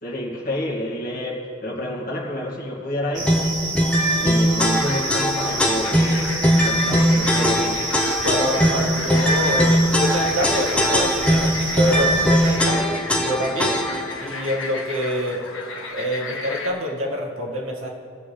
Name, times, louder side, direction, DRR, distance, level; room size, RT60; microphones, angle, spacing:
voice 1, 0.0-3.3 4.2-6.3 6.6-7.8, left 1 dB, 40° left, -4 dB, 2.1 m, -29 dB
sound 1, 3.1-12.6, right 2 dB, 55° right, 1.7 m, -30 dB
sound 2, 3.3-14.1, equal, 5° left, 0.8 m, -20 dB
sound 3, 4.7-16.7, left 3 dB, 65° left, 1.2 m, -33 dB
voice 2, 8.2-13.8 14.2-15.4 15.9-17.9, equal, 75° right, -2 dB, 2.0 m, -26 dB
20.0 x 7.1 x 3.4 m, 2.5 s
head